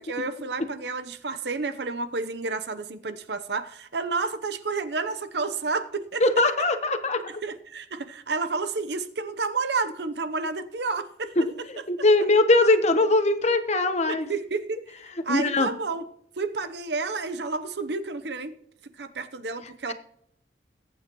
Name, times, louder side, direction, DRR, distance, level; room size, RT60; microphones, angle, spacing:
voice 1, 0.0-6.2 7.3-11.7 14.1-14.8 15.2-16.1 16.4-18.6 19.0-19.9, right 4 dB, 70° right, 11 dB, 0.8 m, -30 dB
voice 2, 6.2-7.2 11.4-11.5 11.9-14.3 15.3-15.7, left 2 dB, 40° left, 8 dB, 1.0 m, -21 dB
22.0 x 8.8 x 3.0 m, 0.71 s
head